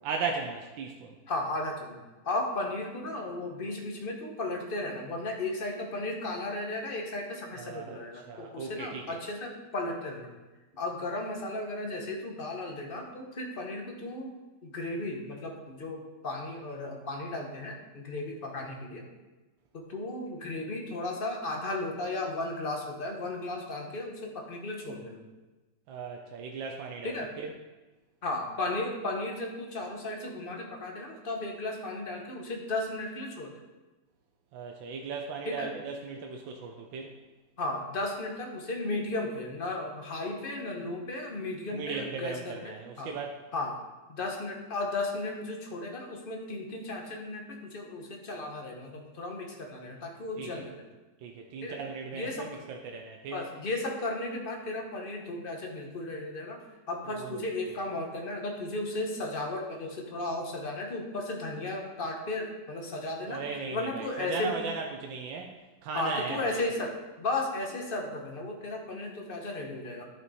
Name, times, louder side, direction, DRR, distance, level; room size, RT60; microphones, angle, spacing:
voice 1, 0.0-1.1 7.5-8.0 8.3-9.0 25.9-27.5 34.5-37.1 41.7-43.4 50.4-50.6 51.2-53.4 57.1-57.4 63.3-65.5 65.8-66.6, right 5 dB, 85° right, 2 dB, 1.5 m, -37 dB
voice 2, 1.3-2.0 2.2-10.3 10.7-14.3 14.6-19.0 19.7-25.2 27.0-27.3 28.2-33.5 35.4-35.7 37.6-43.1 43.5-43.8 44.1-50.8 51.6-51.8 52.1-52.6 53.3-56.6 56.9-63.4 63.7-64.5 65.9-70.1, left 2 dB, 35° left, 2 dB, 1.1 m, -35 dB
11.0 x 6.1 x 4.2 m, 1.2 s
omnidirectional pair, 2.0 m